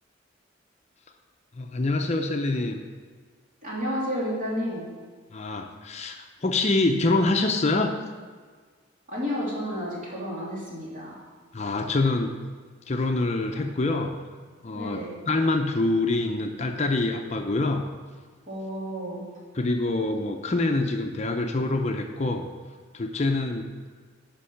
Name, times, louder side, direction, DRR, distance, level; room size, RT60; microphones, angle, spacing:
voice 1, 1.5-2.8 5.3-8.0 11.5-12.4 12.9-14.1 14.6-17.8 19.5-22.4 22.9-23.6, left 2 dB, 35° left, 4 dB, 0.6 m, -25 dB
voice 2, 3.6-4.8 9.1-11.2 14.7-15.2 18.5-19.3, equal, 45° right, -6 dB, 3.0 m, -31 dB
10.0 x 5.3 x 5.7 m, 1.5 s
head